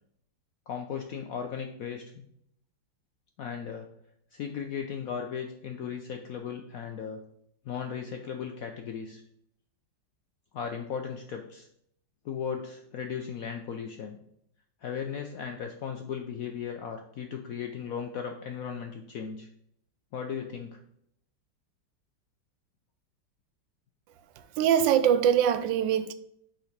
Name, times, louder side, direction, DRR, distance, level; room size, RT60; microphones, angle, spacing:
voice 1, 0.7-2.2 3.4-3.9 4.3-7.2 7.7-9.2 10.5-11.7 12.2-14.2 14.8-19.5 20.1-20.8, left 7 dB, 70° left, 0.8 m, -36 dB
voice 2, 24.6-26.1, right 9 dB, 80° right, 1.2 m, -23 dB
5.8 x 3.9 x 5.7 m
omnidirectional pair, 2.1 m